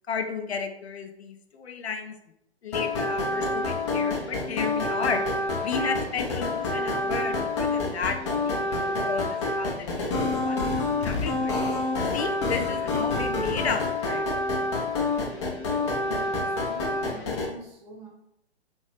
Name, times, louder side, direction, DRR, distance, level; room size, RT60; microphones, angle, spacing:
voice 1, 0.1-2.2 2.6-5.2 5.6-9.3 9.6-11.5 12.1-14.4 17.1-17.2, left 5 dB, 75° left, 6 dB, 0.5 m, -33 dB
sound 1, 2.7-17.5, left 2 dB, 25° left, 0.5 m, -28 dB
voice 2, 16.0-18.1, right 1 dB, 20° right, -3 dB, 0.7 m, -45 dB
2.9 x 2.5 x 3.2 m, 0.78 s
figure-of-eight pair, 130°, 33 cm